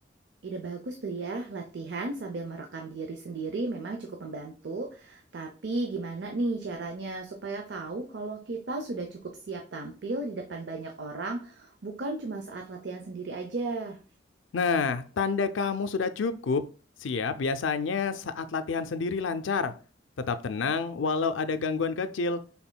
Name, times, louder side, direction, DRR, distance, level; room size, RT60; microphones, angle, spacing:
voice 1, 0.4-14.0, right 3 dB, 65° right, 3 dB, 0.6 m, -35 dB
voice 2, 14.5-16.6 17.0-19.7 20.3-22.4, left 5 dB, 90° left, 10 dB, 0.5 m, -28 dB
6.0 x 3.5 x 2.2 m, 0.37 s
head